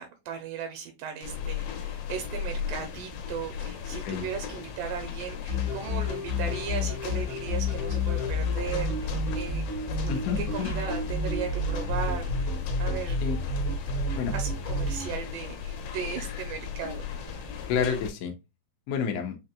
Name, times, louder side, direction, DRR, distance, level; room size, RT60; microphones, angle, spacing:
voice 1, 0.0-9.6 10.0-13.2 14.3-17.4, right 7 dB, 85° right, 5 dB, 2.2 m, -37 dB
sound 1, 1.2-18.1, left 7 dB, 70° left, 1.8 m, -37 dB
sound 2, 5.5-15.1, left 2 dB, 30° left, 1.1 m, -30 dB
voice 2, 10.1-10.7 13.2-13.4 14.1-14.3 16.2-16.4 17.7-18.3 18.9-19.4, left 7 dB, 90° left, 3 dB, 1.4 m, -29 dB
5.8 x 2.8 x 2.2 m, 0.25 s
omnidirectional pair, 3.9 m